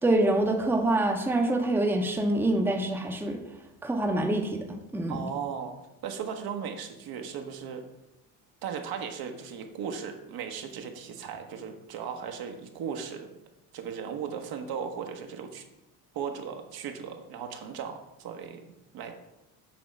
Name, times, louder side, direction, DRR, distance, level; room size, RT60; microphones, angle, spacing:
voice 1, 0.0-3.4 3.8-4.6 4.9-5.3, right 1 dB, 5° right, 2 dB, 0.8 m, -25 dB
voice 2, 5.1-5.7 6.0-7.8 8.6-13.3 13.7-15.6 16.1-19.1, right 7 dB, 55° right, 4 dB, 1.0 m, -37 dB
7.0 x 3.0 x 5.2 m, 0.92 s
supercardioid pair, 80°, 42 cm